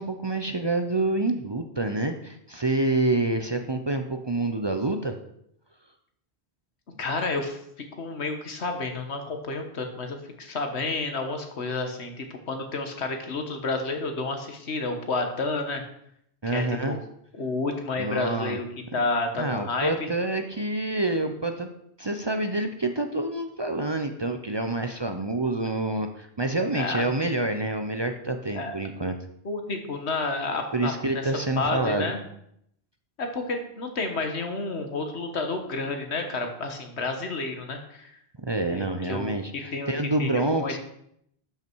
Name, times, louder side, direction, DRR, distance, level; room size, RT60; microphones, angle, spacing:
voice 1, 0.0-5.2 16.4-17.0 18.0-18.6 19.4-21.7 22.0-29.2 30.7-32.1 38.4-40.8, right 2 dB, 30° right, 6 dB, 0.6 m, -27 dB
voice 2, 6.9-7.6 8.0-15.8 16.5-17.0 17.4-18.6 18.9-20.1 26.7-27.3 28.5-28.7 29.4-32.2 33.2-38.1 38.7-39.9 40.2-40.8, left 3 dB, 85° left, 5 dB, 1.6 m, -30 dB
12.0 x 5.7 x 4.6 m, 0.72 s
omnidirectional pair, 1.1 m